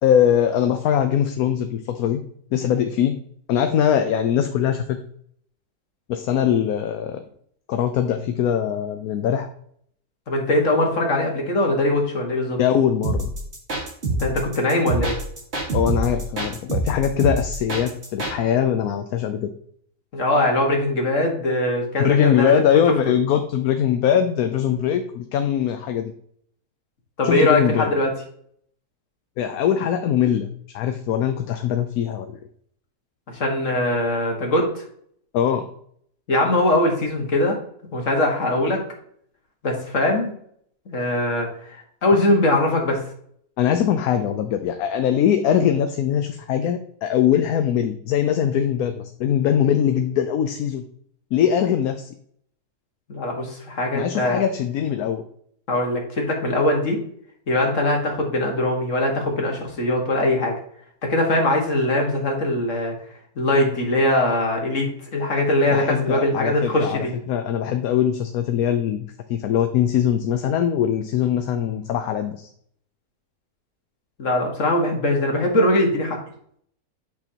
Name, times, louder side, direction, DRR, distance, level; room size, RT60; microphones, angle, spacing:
voice 1, 0.0-2.2 2.5-3.2 3.5-5.0 6.1-7.2 7.7-9.5 12.6-13.3 15.7-19.5 22.0-26.1 27.2-27.9 29.4-30.5 30.7-32.3 35.3-35.6 43.6-50.8 51.3-52.1 53.9-55.2 65.7-72.5, left 9 dB, 75° left, 7 dB, 1.1 m, -21 dB
voice 2, 10.3-12.6 14.1-15.2 20.1-22.6 27.2-28.1 33.3-34.8 36.3-37.6 37.9-38.8 39.6-40.3 40.9-41.5 42.0-43.0 53.1-54.4 55.7-57.0 57.5-60.5 61.0-62.9 63.4-67.1 74.2-76.2, left 1 dB, 55° left, 1 dB, 2.0 m, -21 dB
sound 1, 13.0-18.4, right 2 dB, 45° right, 2.1 m, -26 dB
9.0 x 5.9 x 2.9 m, 0.64 s
omnidirectional pair, 1.6 m